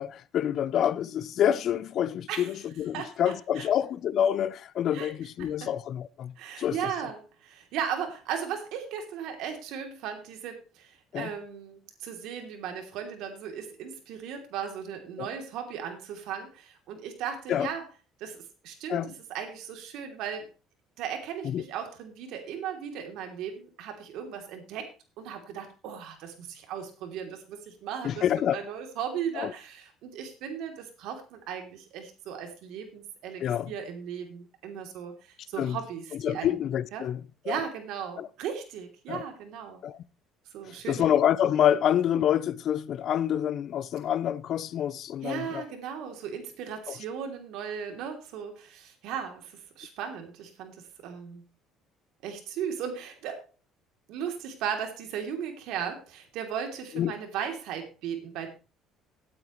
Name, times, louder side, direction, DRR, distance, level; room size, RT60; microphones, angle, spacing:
voice 1, 0.0-6.8 11.1-11.3 15.2-15.3 17.5-17.7 18.9-19.1 21.4-21.6 28.0-28.6 29.3-29.5 33.4-33.7 35.6-35.8 36.2-37.2 37.5-37.6 38.2-38.3 39.1-39.2 39.8-40.0 40.9-45.6 46.9-47.0 56.9-57.1, left 10 dB, 55° left, 0.6 m, -27 dB
voice 2, 2.9-3.7 4.9-5.1 5.4-5.7 6.4-17.9 18.2-20.5 21.0-28.2 28.5-36.6 36.9-37.1 37.4-39.8 40.5-41.1 45.2-51.5 52.2-53.5 54.1-58.5, right 8 dB, 75° right, 2.9 m, -37 dB
17.5 x 8.8 x 3.1 m
cardioid pair, 125°, 0 cm